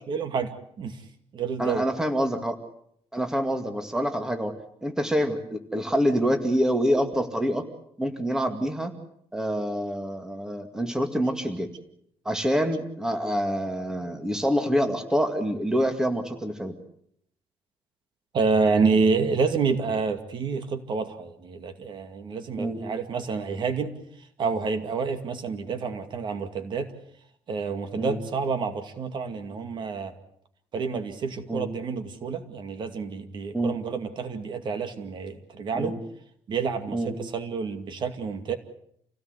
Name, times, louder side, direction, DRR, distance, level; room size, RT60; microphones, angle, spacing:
voice 1, 0.1-0.5 0.8-1.0 1.3-1.8 18.3-23.9 24.4-26.9 27.5-30.1 30.7-35.9 36.5-38.5, right 4 dB, 50° right, 8 dB, 2.3 m, -28 dB
voice 2, 1.6-2.6 3.1-4.5 4.8-7.7 8.0-8.9 9.3-11.7 12.2-16.8 22.6-22.8 28.0-28.2 31.5-31.7 33.5-33.8 35.7-36.0 36.9-37.1, equal, 5° right, 6 dB, 2.2 m, -26 dB
28.0 x 17.5 x 8.2 m, 0.70 s
cardioid pair, 150°, 10 cm